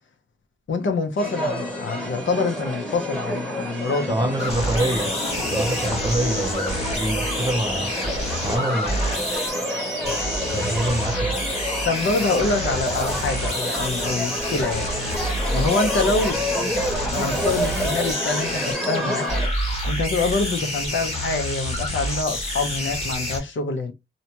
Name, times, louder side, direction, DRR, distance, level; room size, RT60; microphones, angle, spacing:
voice 1, 0.7-4.5 11.8-14.9 15.5-16.4 17.1-19.3 19.8-23.9, left 3 dB, 70° left, 0.7 m, -25 dB
sound 1, 1.2-19.5, equal, 5° left, 1.0 m, -29 dB
voice 2, 4.1-5.1 5.5-8.0 8.4-9.0 10.5-11.4, right 1 dB, 20° right, 0.5 m, -26 dB
sound 2, 4.4-23.4, equal, 30° left, 1.3 m, -28 dB
2.7 x 2.2 x 2.8 m
wide cardioid pair, 100°, 20 cm